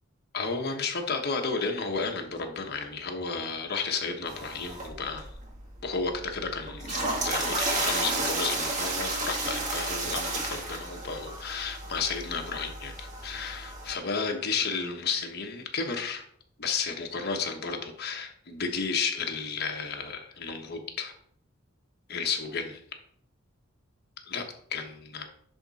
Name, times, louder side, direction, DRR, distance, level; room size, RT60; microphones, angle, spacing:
voice 1, 0.3-5.3 5.8-16.2 16.6-21.1 22.1-22.8 24.3-24.4 24.7-25.3, left 5 dB, 55° left, 3 dB, 1.2 m, -32 dB
sound 1, 4.3-13.9, right 2 dB, 35° right, 1.9 m, -33 dB
10.5 x 3.6 x 4.2 m, 0.63 s
head